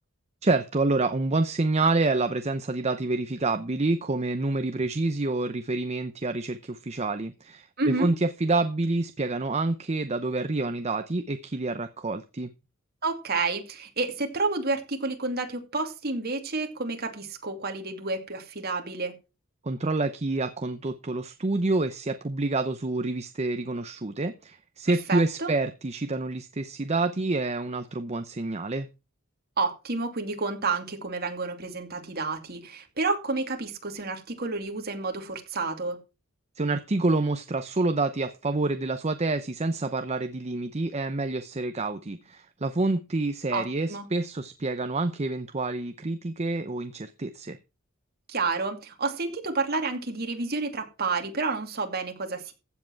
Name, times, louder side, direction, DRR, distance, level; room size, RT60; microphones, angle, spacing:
voice 1, 0.4-12.5 19.6-28.9 36.6-47.6, right 2 dB, 30° right, 9 dB, 0.7 m, -28 dB
voice 2, 7.8-8.1 13.0-19.1 24.9-25.5 29.6-36.0 43.5-44.1 48.3-52.5, right 3 dB, 45° right, 4 dB, 2.5 m, -30 dB
15.0 x 7.7 x 4.6 m, 0.30 s
head